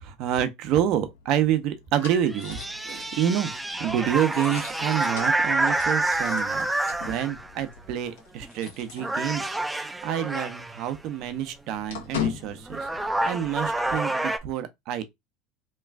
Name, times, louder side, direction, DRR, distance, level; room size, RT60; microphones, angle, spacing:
voice 1, 0.0-3.5 3.8-6.7 7.0-9.5 9.8-12.9 13.2-15.0, right 10 dB, 60° right, 0.7 m, -28 dB
sound 1, 0.8-9.7 10.0-10.1 10.4-13.9, left 8 dB, 85° left, 1.1 m, -40 dB
sound 2, 2.0-7.5 8.4-8.7 9.0-10.8 12.2-12.3 12.7-14.4, right 2 dB, 10° right, 0.4 m, -28 dB
3.0 x 2.4 x 3.3 m
hypercardioid pair, 90°, 0 cm